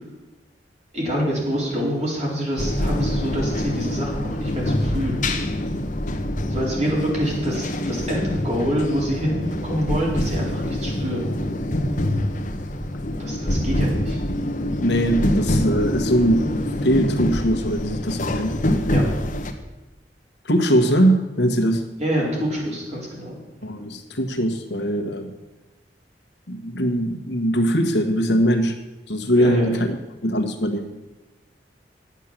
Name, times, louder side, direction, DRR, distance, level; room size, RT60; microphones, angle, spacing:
voice 1, 0.9-5.3 6.5-11.3 13.1-14.2 18.9-19.0 22.0-23.4 29.3-29.7, equal, 40° right, -3 dB, 4.1 m, -26 dB
sound 1, 2.6-19.5, left 1 dB, 50° left, 1.2 m, -25 dB
voice 2, 14.8-16.4 16.8-18.6 20.4-21.8 23.6-25.3 26.5-28.8 29.1-30.0 30.2-30.9, equal, 70° left, 7 dB, 1.4 m, -21 dB
10.5 x 8.3 x 7.5 m, 1.1 s
head